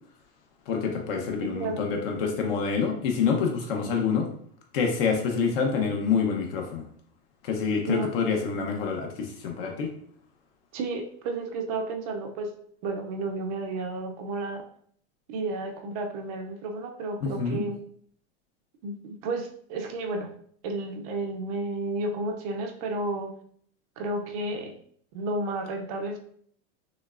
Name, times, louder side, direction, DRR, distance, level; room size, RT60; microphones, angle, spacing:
voice 1, 0.7-4.3 4.7-6.9 7.4-9.9 17.2-17.6, left 5 dB, 55° left, 2 dB, 0.8 m, -27 dB
voice 2, 1.5-1.9 7.9-8.1 10.7-12.5 12.8-14.6 15.3-17.8 18.8-20.3 20.6-23.4 24.0-24.7 25.1-26.2, right 2 dB, 35° right, 4 dB, 0.4 m, -32 dB
6.2 x 3.2 x 2.4 m, 0.62 s
supercardioid pair, 175°, 35 cm